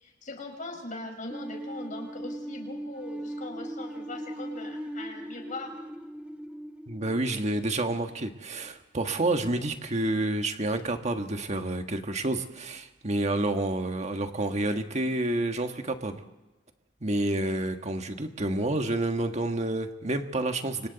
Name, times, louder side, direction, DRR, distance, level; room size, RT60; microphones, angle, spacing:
voice 1, 0.0-5.8, left 2 dB, 45° left, 2 dB, 5.1 m, -40 dB
sound 1, 1.3-8.2, right 1 dB, 5° right, 0.8 m, -39 dB
voice 2, 6.9-16.2 17.0-20.9, right 2 dB, 35° right, 6 dB, 1.6 m, -29 dB
29.5 x 25.5 x 4.1 m, 1.0 s
head